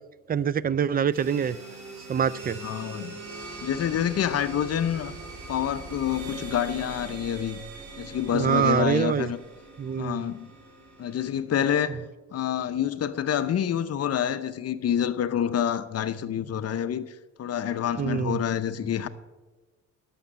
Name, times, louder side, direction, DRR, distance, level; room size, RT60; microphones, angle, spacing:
voice 1, 0.3-1.6 2.1-2.6 8.3-9.3 9.8-10.3 18.0-18.4, right 8 dB, 30° right, 0.4 m, -25 dB
sound 1, 1.1-11.3, right 3 dB, 75° right, 3.6 m, -42 dB
voice 2, 2.6-3.2 3.6-5.1 5.5-7.6 8.0-9.4 10.0-10.5 11.0-12.0 12.3-17.0 17.4-19.1, left 9 dB, 55° left, 0.8 m, -27 dB
11.5 x 6.9 x 7.4 m
cardioid pair, 90°, 30 cm